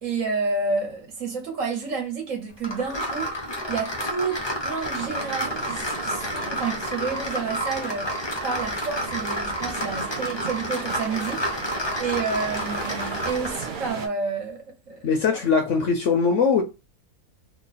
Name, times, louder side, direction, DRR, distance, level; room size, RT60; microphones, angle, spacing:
voice 1, 0.0-15.0, right 4 dB, 55° right, 1.3 m, -30 dB
sound 1, 2.6-13.7, equal, 35° left, 0.4 m, -30 dB
sound 2, 4.9-14.1, right 6 dB, 75° right, 0.4 m, -37 dB
voice 2, 15.0-16.6, left 5 dB, 65° left, 0.8 m, -21 dB
3.0 x 2.2 x 4.0 m
omnidirectional pair, 1.7 m